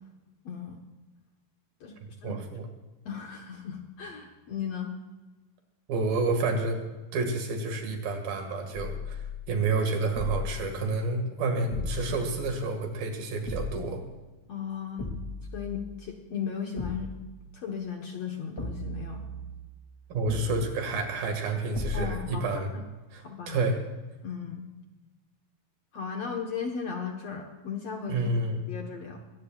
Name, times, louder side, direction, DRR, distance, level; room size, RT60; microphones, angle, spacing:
voice 1, 0.4-0.8 1.8-2.0 2.2-2.4 3.1-4.9 14.5-15.1 15.5-17.1 17.5-19.3 21.9-22.6 23.2-23.7 24.2-24.7 25.9-29.2, left 7 dB, 55° left, 2 dB, 1.9 m, -36 dB
voice 2, 2.2-2.7 5.9-6.8 7.1-9.2 9.5-14.0 20.1-22.7 23.1-23.8 28.1-28.7, right 3 dB, 70° right, 3 dB, 3.9 m, -29 dB
sound 1, 8.7-9.5 10.1-10.8 11.7-12.7 13.5-14.1 15.0-16.1 16.8-17.4 18.6-19.7 20.3-20.9 21.7-22.4, left 2 dB, 10° left, 1.7 m, -36 dB
23.0 x 18.0 x 2.5 m, 1.2 s
omnidirectional pair, 4.3 m